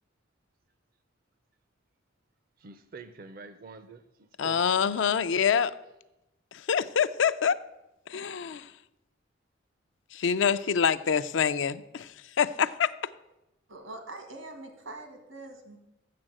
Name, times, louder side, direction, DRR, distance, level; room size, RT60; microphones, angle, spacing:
voice 1, 2.6-4.8, right 4 dB, 45° right, 11 dB, 0.5 m, -47 dB
voice 2, 4.4-5.7 6.7-7.6 8.1-8.7 10.1-12.1 12.4-12.9, left 7 dB, 70° left, 13 dB, 0.4 m, -25 dB
voice 3, 13.7-15.8, right 2 dB, 85° right, 5 dB, 2.0 m, -43 dB
7.6 x 7.1 x 7.5 m, 0.93 s
head